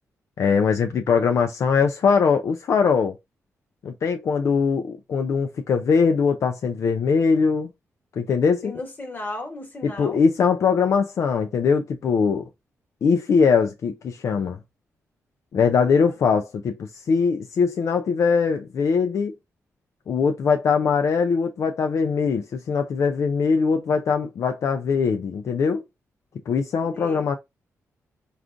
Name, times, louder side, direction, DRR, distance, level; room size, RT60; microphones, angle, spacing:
voice 1, 0.4-3.1 3.8-7.7 8.2-8.7 9.8-12.4 13.0-14.6 15.5-19.3 20.1-25.8 26.5-27.4, left 5 dB, 60° left, 0.4 m, -21 dB
voice 2, 8.6-10.2 15.9-16.0 26.8-27.3, left 2 dB, 30° left, 1.2 m, -35 dB
3.6 x 2.4 x 2.4 m
cardioid pair, 80°, 6 cm